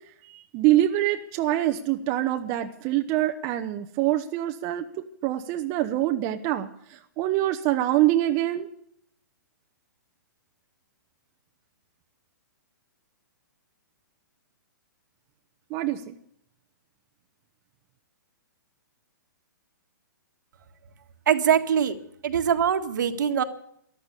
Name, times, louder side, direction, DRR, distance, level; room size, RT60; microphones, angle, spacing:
voice 1, 0.3-8.7 15.7-16.2, right 14 dB, 35° right, 5 dB, 1.0 m, -25 dB
voice 2, 21.2-22.0 22.2-23.4, right 8 dB, 65° right, 8 dB, 1.7 m, -22 dB
14.0 x 12.0 x 8.2 m, 0.69 s
hypercardioid pair, 130°, 11 cm